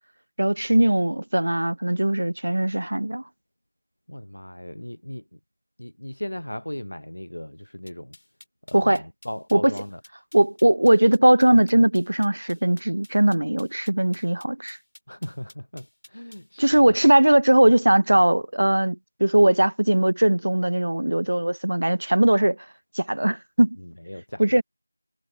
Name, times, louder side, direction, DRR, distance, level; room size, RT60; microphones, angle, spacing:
voice 1, 0.4-3.2 8.7-9.0 9.5-9.7 10.3-14.8 16.6-22.6 22.9-23.8 24.4-24.6, right 1 dB, 35° right, 0.5 m, -19 dB
voice 2, 4.1-5.4 5.8-8.2 8.7-10.0 15.1-16.9 23.8-24.6, left 1 dB, 70° left, 0.7 m, -37 dB
sound 1, 7.9-16.5, left 1 dB, 30° left, 2.4 m, -51 dB
figure-of-eight pair, 180°, 0 cm